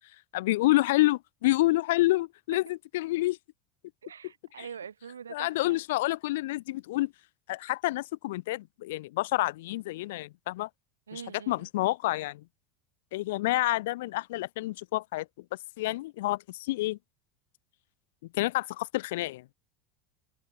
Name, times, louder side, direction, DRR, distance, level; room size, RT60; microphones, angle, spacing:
voice 1, 0.3-3.4 4.6-4.7 5.3-7.1 7.5-10.7 11.1-11.2 11.5-12.4 13.1-15.3 15.8-17.0 18.3-19.4, left 18 dB, 60° left, 0.5 m, -28 dB
voice 2, 4.0-5.8 11.1-11.7, right 7 dB, 75° right, 1.2 m, -44 dB
open air
figure-of-eight pair, 75°, 0 cm